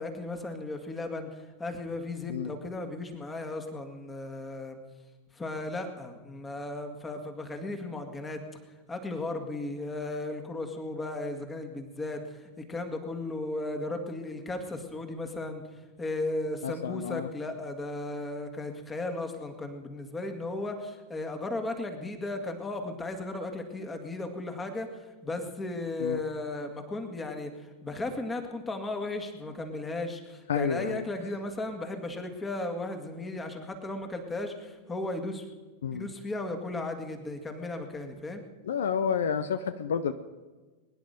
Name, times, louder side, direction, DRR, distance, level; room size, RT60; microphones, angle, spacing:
voice 1, 0.0-4.8 5.3-8.4 8.9-15.6 16.0-35.5 35.9-38.4, left 2 dB, 15° left, 6 dB, 2.1 m, -35 dB
voice 2, 16.6-17.3 26.0-26.2 30.5-31.0 35.8-36.1 38.7-40.1, left 7 dB, 65° left, 12 dB, 0.6 m, -30 dB
22.5 x 10.5 x 5.2 m, 1.3 s
figure-of-eight pair, 90°, 0 cm